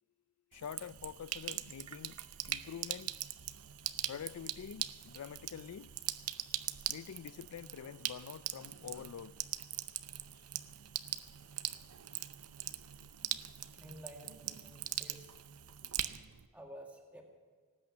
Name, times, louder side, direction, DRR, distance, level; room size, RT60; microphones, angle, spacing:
voice 1, 0.5-3.1 4.1-5.9 6.9-9.4, left 8 dB, 80° left, 0.4 m, -46 dB
Sink (filling or washing), 0.5-16.5, right 13 dB, 90° right, 0.7 m, -42 dB
voice 2, 13.6-15.4 16.5-17.2, equal, 5° right, 2.1 m, -52 dB
19.0 x 8.8 x 7.3 m
head